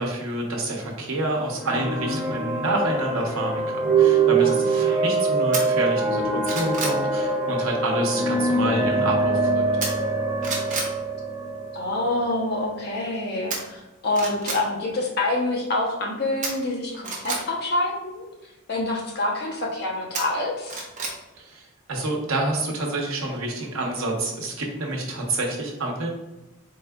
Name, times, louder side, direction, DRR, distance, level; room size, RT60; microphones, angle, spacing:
voice 1, 0.0-9.6 21.4-26.1, right 2 dB, 85° right, 0 dB, 0.9 m, -28 dB
sound 1, 1.6-13.2, right 3 dB, 15° right, 1.0 m, -24 dB
sound 2, 5.5-5.6 6.1-7.0 9.8-10.2 10.4-10.9 13.5-13.6 14.1-14.6 16.4-17.4 20.1-21.2 21.5-21.6, right 3 dB, 40° right, 0.8 m, -29 dB
voice 2, 11.7-18.2 18.7-20.8, left 2 dB, 50° left, -1 dB, 0.9 m, -26 dB
4.0 x 3.7 x 2.3 m, 1.0 s
head